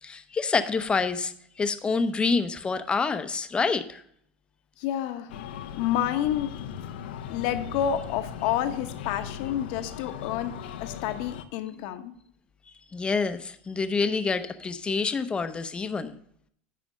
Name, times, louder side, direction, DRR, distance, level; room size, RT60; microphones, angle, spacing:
voice 1, 0.0-4.0 12.9-16.1, left 4 dB, 20° left, 0.7 m, -27 dB
voice 2, 4.8-5.3 5.8-6.5 7.3-10.5 10.8-12.1, left 10 dB, 70° left, 1.0 m, -29 dB
Breathing, 5.3-11.4, left 8 dB, 90° left, 0.7 m, -38 dB
10.5 x 4.3 x 6.3 m
supercardioid pair, 115°, 5 cm